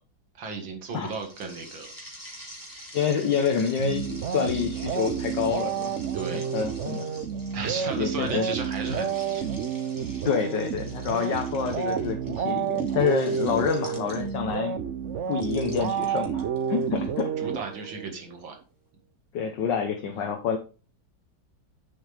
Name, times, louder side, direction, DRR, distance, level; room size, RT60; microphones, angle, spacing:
voice 1, 0.4-1.9 6.1-6.5 7.5-9.5 17.4-18.6, right 4 dB, 85° right, 3 dB, 2.7 m, -35 dB
sound 1, 0.9-14.5 15.3-17.2, equal, 10° right, 2.9 m, -47 dB
voice 2, 2.9-6.0 6.3-7.1 8.0-8.5 10.2-14.8 15.3-17.3 19.3-20.6, left 7 dB, 70° left, 4 dB, 1.7 m, -27 dB
sound 2, 3.8-18.1, right 7 dB, 65° right, 0.7 m, -30 dB
9.3 x 7.7 x 3.5 m, 0.36 s
omnidirectional pair, 2.1 m